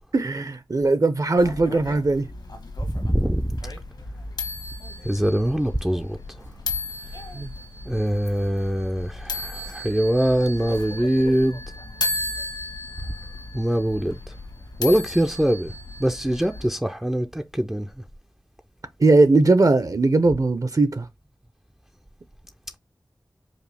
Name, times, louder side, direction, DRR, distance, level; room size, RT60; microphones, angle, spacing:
voice 1, 0.1-2.3 7.3-7.5 19.0-21.1, right 3 dB, 50° right, 0.7 m, -19 dB
sound 1, 1.4-16.7, left 2 dB, 75° left, 1.3 m, -35 dB
voice 2, 2.9-3.6 5.0-6.2 7.9-11.6 13.5-14.1 14.8-15.7 16.0-17.9, equal, 5° right, 0.4 m, -23 dB
5.0 x 2.3 x 3.3 m
wide cardioid pair, 50°, 8 cm